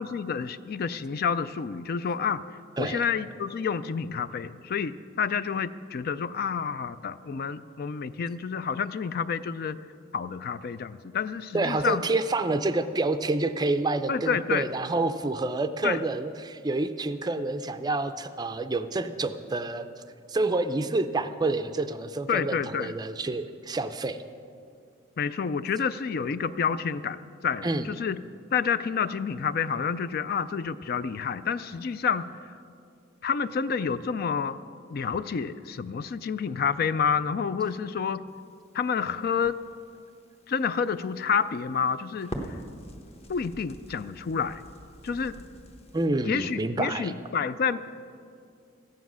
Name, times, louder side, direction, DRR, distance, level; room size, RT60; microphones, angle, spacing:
voice 1, 0.0-2.4 2.8-9.8 10.1-12.0 14.1-14.7 15.8-16.0 22.3-22.9 25.2-27.2 27.4-28.2 28.5-32.3 33.2-34.6 34.9-38.2 38.7-39.6 40.5-42.4 43.3-44.6 45.0-45.4 46.2-47.8, left 6 dB, 50° left, 14 dB, 0.4 m, -29 dB
voice 2, 11.5-19.9 20.3-24.2 27.6-27.9 45.9-47.1, right 2 dB, 20° right, 10 dB, 0.4 m, -28 dB
Crackle, 38.3-46.1, equal, 30° left, 1.0 m, -45 dB
14.0 x 9.5 x 6.2 m, 2.3 s
head